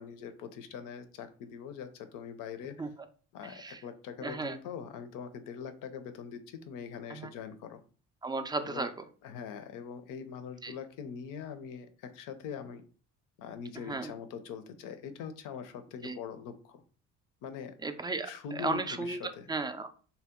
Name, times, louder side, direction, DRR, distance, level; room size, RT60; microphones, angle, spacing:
voice 1, 0.0-2.8 3.3-7.8 8.6-8.9 9.2-12.8 13.4-16.8 17.4-17.8 18.2-19.5, left 7 dB, 65° left, 10 dB, 0.6 m, -42 dB
voice 2, 3.4-3.8 4.2-4.6 7.1-7.3 8.2-8.9 10.6-10.7 13.9-14.1 16.0-16.2 17.8-19.2 19.5-19.9, right 3 dB, 15° right, 8 dB, 0.3 m, -35 dB
2.8 x 2.1 x 3.5 m, 0.40 s
supercardioid pair, 65°, 35 cm